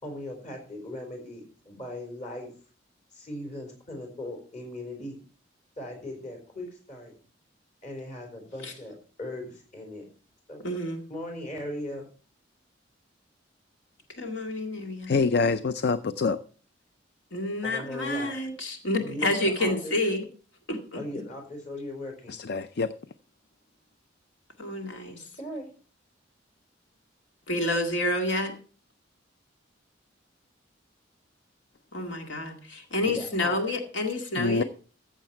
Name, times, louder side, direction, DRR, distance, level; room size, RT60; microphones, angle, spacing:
voice 1, 0.0-2.5 3.1-5.2 5.8-7.1 7.8-10.0 10.5-10.6 11.1-12.1 17.6-18.3 19.0-20.0 20.9-22.3 25.4-25.7 33.0-33.6, left 1 dB, 40° left, 4.6 m, -38 dB
voice 2, 10.6-11.0 14.2-15.2 17.3-20.3 20.7-21.0 24.6-25.3 27.5-28.5 31.9-34.6, left 1 dB, 80° left, 2.0 m, -29 dB
voice 3, 15.1-16.4 22.3-22.9 34.4-34.6, left 4 dB, 60° left, 0.5 m, -25 dB
15.0 x 7.2 x 4.6 m
head